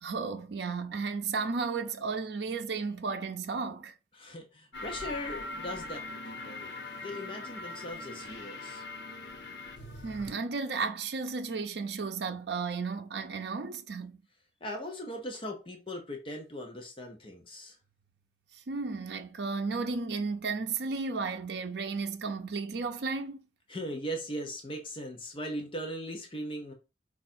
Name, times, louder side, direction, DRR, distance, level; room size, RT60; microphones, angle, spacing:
voice 1, 0.0-3.9 10.0-14.2 18.7-23.4, right 4 dB, 70° right, 0.5 m, -33 dB
voice 2, 4.1-8.8 14.6-17.7 23.7-26.7, equal, 30° left, 0.7 m, -39 dB
sound 1, 4.7-10.3, left 2 dB, 75° left, 1.0 m, -41 dB
4.7 x 2.4 x 4.2 m
head